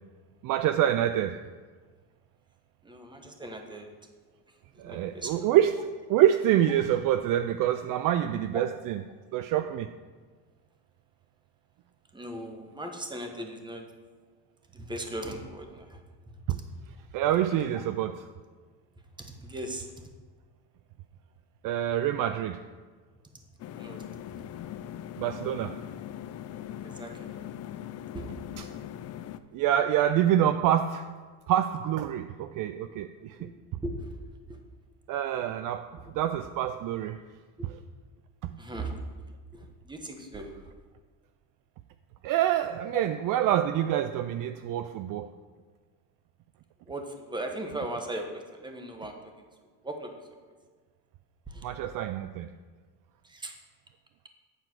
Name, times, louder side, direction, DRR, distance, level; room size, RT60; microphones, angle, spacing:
voice 1, 0.4-1.5 4.8-9.0 9.3-9.9 17.1-18.2 21.6-22.6 25.2-25.8 29.5-31.1 31.5-33.5 35.1-37.2 38.4-38.5 42.2-45.3 51.6-52.5, right 11 dB, 55° right, 10 dB, 0.4 m, -26 dB
voice 2, 2.8-3.9 4.5-4.6 4.8-5.5 12.1-13.9 14.7-16.0 16.5-16.6 19.2-20.1 23.7-24.4 26.8-27.4 28.1-28.3 33.4-33.5 33.8-34.2 34.5-34.6 37.6-37.7 38.6-39.1 39.5-40.7 42.9-43.0 46.9-49.4 49.8-50.5 51.5-51.7 53.2-53.5, right 1 dB, 10° right, 4 dB, 1.1 m, -38 dB
sound 1, 23.6-29.4, left 11 dB, 40° left, 0.4 m, -40 dB
9.1 x 4.6 x 6.1 m, 1.5 s
cardioid pair, 110°, 41 cm